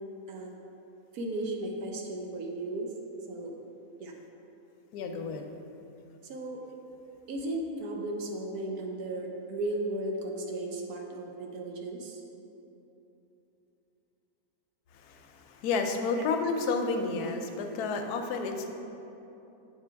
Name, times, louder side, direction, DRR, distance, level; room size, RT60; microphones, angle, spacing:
voice 1, 1.1-2.9 3.3-3.5 4.0-4.1 6.3-6.6 7.3-12.2 16.2-16.3, right 1 dB, 80° right, 1 dB, 1.2 m, -35 dB
voice 2, 4.9-5.5 15.0-18.7, left 4 dB, 90° left, 5 dB, 1.1 m, -31 dB
8.1 x 4.4 x 3.4 m, 3.0 s
omnidirectional pair, 1.6 m